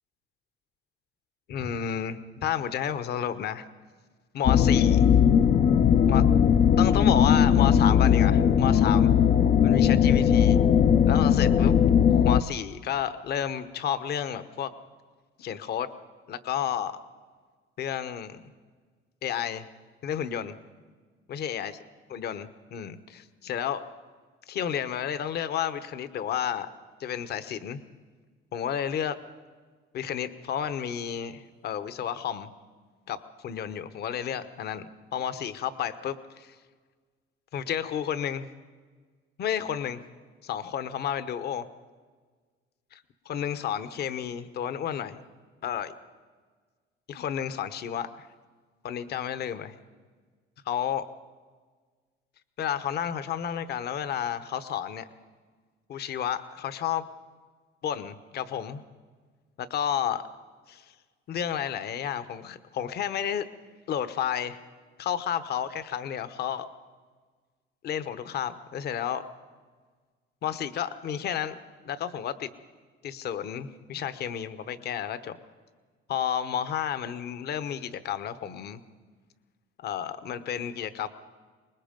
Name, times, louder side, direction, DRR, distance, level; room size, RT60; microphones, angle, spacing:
voice 1, 1.5-3.7 4.3-5.1 6.1-6.3 6.8-9.1 9.6-10.6 11.1-11.7 12.3-14.7 15.4-15.9 16.3-17.0 17.8-18.5 19.2-19.7 20.0-20.6 21.3-21.7 22.1-23.9 24.5-26.7 27.0-27.8 28.5-29.2 29.9-32.5 33.1-36.5 37.5-38.5 39.4-40.0 40.4-41.7 42.9-45.2 45.6-45.9 47.1-48.3 48.8-49.8 50.7-51.1 52.6-55.1 55.9-57.1 57.8-58.8 59.6-60.3 60.7-60.8 61.3-63.5 63.9-64.6 65.0-66.7 67.8-69.3 70.4-71.5 71.8-72.5 73.0-75.4 76.1-78.8 79.8-81.1, left 9 dB, 50° left, 13 dB, 1.1 m, -31 dB
sound 1, 4.4-12.4, left 8 dB, 35° left, 0.5 m, -19 dB
25.0 x 20.5 x 5.2 m, 1.5 s
cardioid pair, 130°, 21 cm